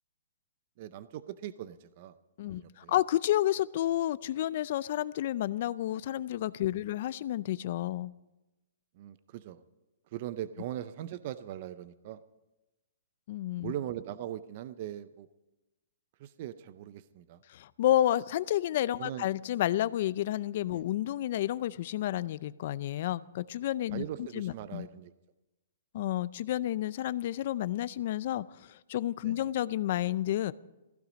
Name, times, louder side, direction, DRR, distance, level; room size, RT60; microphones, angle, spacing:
voice 1, 0.8-2.1 2.4-2.9 9.0-9.6 10.1-12.2 13.6-15.3 16.2-17.4 19.0-19.3 20.7-20.9 23.9-25.1 29.2-29.4, right 12 dB, 35° right, 14 dB, 0.5 m, -40 dB
voice 2, 2.4-8.1 13.3-13.7 17.5-24.0 24.3-24.9 25.9-30.5, left 13 dB, 40° left, 18 dB, 0.4 m, -30 dB
16.0 x 15.5 x 5.2 m, 1.0 s
hypercardioid pair, 170°, 0 cm